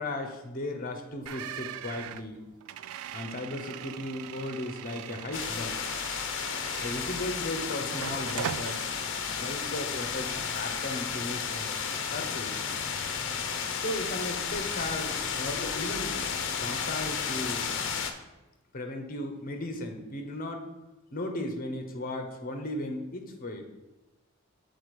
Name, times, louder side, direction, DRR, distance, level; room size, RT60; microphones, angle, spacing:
voice 1, 0.0-2.4 3.1-5.8 6.8-8.9 9.3-12.6 13.8-16.2 16.6-17.8 18.7-20.7 21.1-23.6, left 1 dB, 45° left, 5 dB, 1.0 m, -36 dB
sound 1, 1.3-7.5 7.9-8.8, right 9 dB, 85° right, 0.3 m, -40 dB
sound 2, 5.3-18.1, left 6 dB, 60° left, 0.7 m, -33 dB
7.2 x 4.3 x 4.8 m, 1.1 s
head